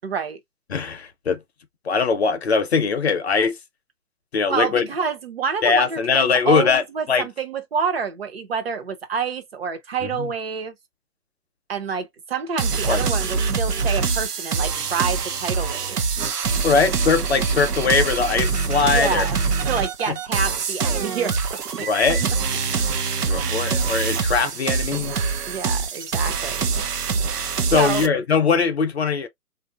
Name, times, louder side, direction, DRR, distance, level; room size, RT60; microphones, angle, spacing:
voice 1, 0.0-0.4 4.5-10.7 11.7-16.0 18.9-21.4 21.8-21.9 23.3-23.6 25.5-26.7 27.7-28.1, right 6 dB, 40° right, 0.8 m, -28 dB
voice 2, 0.7-1.4 1.8-3.6 4.3-4.9 5.6-6.8 7.1-7.3 10.0-10.3 12.9-13.0 16.6-19.3 20.1-20.2 21.8-22.2 23.3-25.1 27.7-29.3, left 5 dB, 45° left, 0.7 m, -21 dB
sound 1, 12.6-28.1, right 5 dB, 75° right, 0.8 m, -24 dB
3.6 x 2.6 x 2.4 m
figure-of-eight pair, 145°, 47 cm